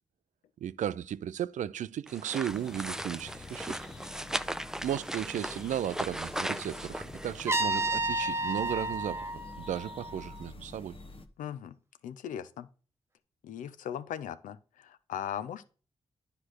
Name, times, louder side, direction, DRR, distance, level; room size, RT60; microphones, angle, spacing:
voice 1, 0.6-3.8 4.8-9.3 9.6-10.9, right 10 dB, 70° right, 0.4 m, -35 dB
sound 1, 2.1-8.0, right 1 dB, 5° right, 0.4 m, -38 dB
sound 2, 2.5-11.3, left 3 dB, 45° left, 0.9 m, -48 dB
Trumpet, 7.5-10.4, right 2 dB, 20° right, 0.9 m, -31 dB
voice 2, 11.4-11.8 12.0-12.7 13.4-15.7, left 9 dB, 85° left, 0.5 m, -38 dB
9.7 x 3.3 x 6.2 m
supercardioid pair, 45°, 13 cm